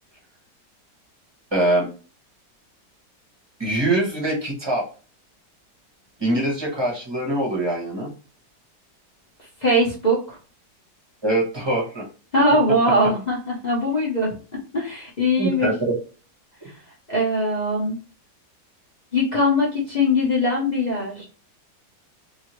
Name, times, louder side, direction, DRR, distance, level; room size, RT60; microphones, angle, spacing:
voice 1, 1.5-1.9 3.6-4.8 6.2-8.1 11.2-12.1 15.4-15.9, right 1 dB, 20° right, -2 dB, 0.8 m, -23 dB
voice 2, 9.6-10.4 12.3-15.7 17.1-18.0 19.1-21.2, left 1 dB, 45° left, -5 dB, 0.5 m, -21 dB
2.8 x 2.7 x 2.9 m, 0.36 s
omnidirectional pair, 1.9 m